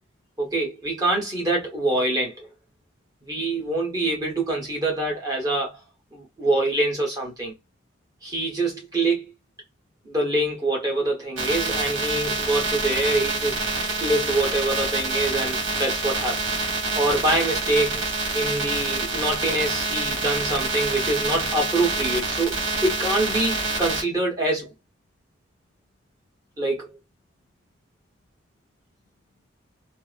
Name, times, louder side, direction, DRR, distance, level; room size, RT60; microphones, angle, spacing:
voice 1, 0.4-2.5 3.3-5.8 6.1-7.5 8.2-9.3 10.0-16.4 16.9-18.0 18.3-24.7 26.6-27.0, right 2 dB, 20° right, 1.0 m, -25 dB
sound 1, 11.4-24.0, right 3 dB, 75° right, 1.3 m, -27 dB
2.8 x 2.0 x 2.4 m
head